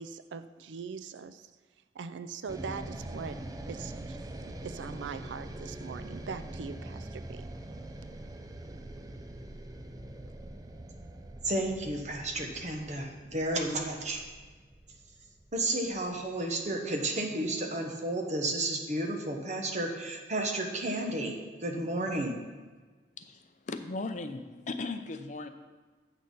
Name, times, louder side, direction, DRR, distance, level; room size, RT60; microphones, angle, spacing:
voice 1, 0.0-1.5 1.9-3.4 3.7-4.2 4.6-7.5, right 5 dB, 85° right, 11 dB, 0.4 m, -41 dB
sound 1, 2.5-16.7, right 1 dB, 20° right, 0.5 m, -44 dB
voice 2, 11.4-14.2 15.5-22.4, right 1 dB, 40° right, 2 dB, 1.1 m, -32 dB
voice 3, 23.2-25.5, left 3 dB, 40° left, 8 dB, 0.5 m, -37 dB
7.8 x 6.4 x 5.4 m, 1.4 s
head